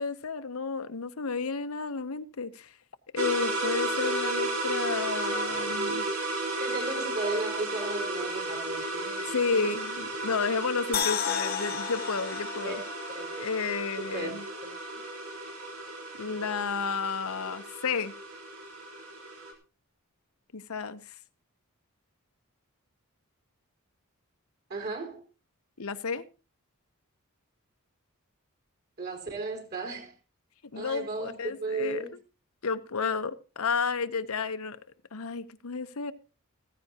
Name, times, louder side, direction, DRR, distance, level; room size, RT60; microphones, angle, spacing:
voice 1, 0.0-2.7 3.1-6.1 9.3-12.8 13.4-14.4 16.2-18.1 20.5-21.1 25.8-26.2 30.7-32.2 32.6-34.8 35.1-36.1, left 5 dB, 75° left, 0.9 m, -32 dB
sound 1, 3.2-19.5, right 2 dB, 80° right, 3.7 m, -34 dB
voice 2, 6.6-9.7 12.6-12.8 13.1-13.5 14.0-14.3 14.6-14.7 24.7-25.2 29.0-30.1 30.8-32.2, right 3 dB, 45° right, 4.2 m, -35 dB
sound 2, 10.9-14.1 14.5-14.6, left 9 dB, 45° left, 1.0 m, -33 dB
15.5 x 14.5 x 2.9 m
head